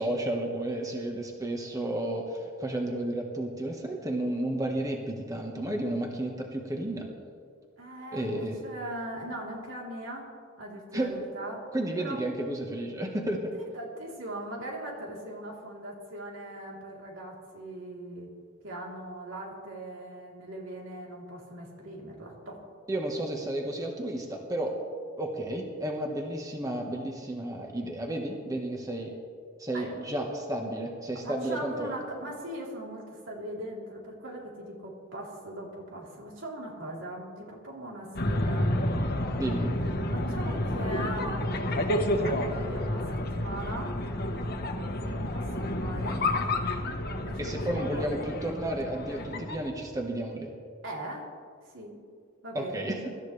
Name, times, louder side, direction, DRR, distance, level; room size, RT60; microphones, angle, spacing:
voice 1, 0.0-7.1 8.1-8.6 10.9-11.1 11.7-13.5 22.9-24.7 25.2-29.1 29.6-31.9 39.3-39.7 47.4-50.5 52.5-53.0, right 1 dB, 20° right, 1 dB, 1.4 m, -32 dB
voice 2, 7.8-10.3 10.6-11.7 12.0-12.2 13.8-18.3 18.6-22.6 29.7-30.0 31.2-38.8 40.1-44.0 45.0-46.3 47.2-48.0 50.8-51.3 51.7-52.0 52.4-52.9, right 1 dB, 85° right, -3 dB, 3.7 m, -40 dB
sound 1, 38.1-49.7, left 1 dB, 55° left, 1.3 m, -30 dB
24.0 x 13.0 x 3.4 m, 2.1 s
head